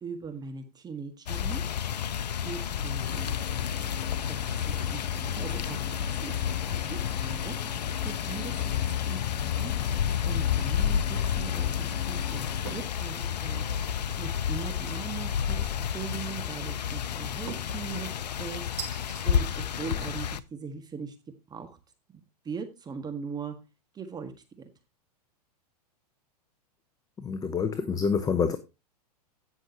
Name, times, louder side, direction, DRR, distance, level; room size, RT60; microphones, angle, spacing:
voice 1, 0.0-1.6 2.4-3.4 4.3-6.0 6.2-7.6 8.0-13.6 14.2-15.7 15.9-21.1 21.5-21.8 22.4-23.5 23.9-24.7, right 6 dB, 20° right, 1.6 m, -40 dB
sound 1, 1.3-20.4, left 9 dB, 85° left, 0.7 m, -30 dB
sound 2, 3.0-12.9, left 8 dB, 55° left, 4.0 m, -41 dB
sound 3, 12.7-12.9 13.4-13.9 15.6-16.1 17.5-17.8 18.8-19.3, right 7 dB, 75° right, 3.9 m, -41 dB
voice 2, 27.2-28.6, left 6 dB, 15° left, 0.9 m, -27 dB
17.0 x 6.4 x 2.8 m
hypercardioid pair, 110°, 21 cm